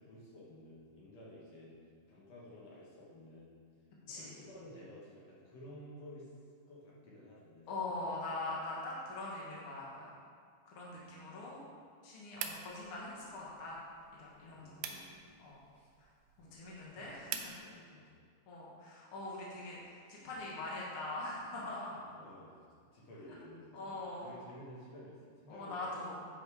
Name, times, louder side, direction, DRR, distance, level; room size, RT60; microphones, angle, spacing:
voice 1, 0.0-1.8 2.1-3.6 4.0-6.3 6.7-7.8 10.9-11.4 14.5-15.3 15.7-15.9 16.4-18.2 22.0-22.6 22.9-23.9 24.2-26.3, left 1 dB, 60° left, -6 dB, 1.8 m, -54 dB
voice 2, 7.7-10.1 10.6-11.6 12.0-13.8 14.1-15.0 15.4-15.6 16.0-16.1 16.4-17.5 18.5-22.0 23.7-24.3 25.5-26.2, left 2 dB, 75° left, -5 dB, 1.2 m, -42 dB
sound 1, 12.4-17.6, right 8 dB, 85° right, 2.1 m, -47 dB
8.6 x 5.5 x 4.7 m, 2.1 s
omnidirectional pair, 4.6 m